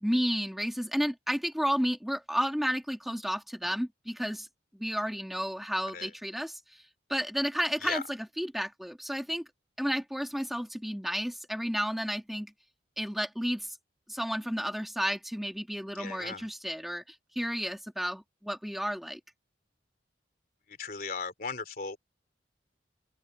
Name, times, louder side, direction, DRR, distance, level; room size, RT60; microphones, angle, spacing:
voice 1, 0.0-4.5 4.8-6.8 7.1-9.4 9.8-12.5 13.0-13.8 14.1-19.2, equal, ahead, 1.4 m, -32 dB
voice 2, 16.0-16.5 20.8-22.0, left 5 dB, 50° left, 3.3 m, -37 dB
head